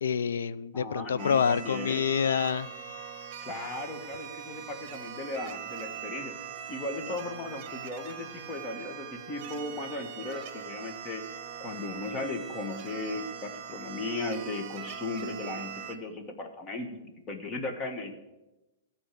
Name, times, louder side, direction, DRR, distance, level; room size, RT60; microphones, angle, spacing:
voice 1, 0.0-2.7, left 7 dB, 90° left, 17 dB, 0.4 m, -27 dB
voice 2, 0.7-2.0 3.4-6.4 6.7-11.2 11.6-18.2, left 2 dB, 25° left, 5 dB, 1.3 m, -36 dB
sound 1, 1.2-15.9, right 8 dB, 35° right, 1.1 m, -41 dB
13.0 x 4.4 x 8.3 m, 1.0 s
hypercardioid pair, 150°, 0 cm